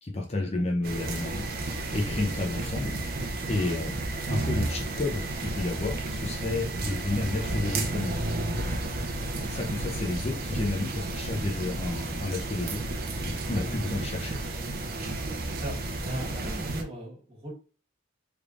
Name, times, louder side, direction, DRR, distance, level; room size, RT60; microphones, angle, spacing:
voice 1, 0.0-2.9 3.5-4.0 4.2-8.2 9.5-12.8 13.2-14.4, left 2 dB, 30° left, 1 dB, 0.6 m, -31 dB
sound 1, 0.8-16.8, right 2 dB, 50° right, 0.6 m, -32 dB
voice 2, 9.1-9.5 13.0-13.8 15.3-17.5, right 1 dB, 30° right, -4 dB, 1.7 m, -40 dB
3.4 x 3.3 x 2.4 m, 0.36 s
head